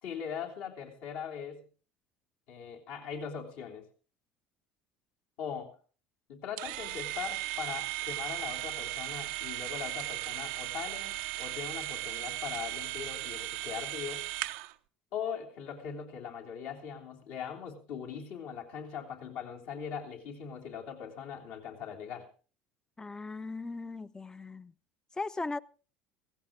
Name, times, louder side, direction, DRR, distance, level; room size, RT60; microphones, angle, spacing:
voice 1, 0.0-1.6 2.5-3.9 5.4-5.7 6.3-14.2 15.1-22.3, left 7 dB, 65° left, 1 dB, 3.1 m, -40 dB
sound 1, 6.6-14.7, right 17 dB, 75° right, 0.7 m, -37 dB
voice 2, 23.0-24.7 25.2-25.6, left 3 dB, 15° left, 17 dB, 0.7 m, -38 dB
16.5 x 15.5 x 3.7 m, 0.37 s
hypercardioid pair, 75°, 5 cm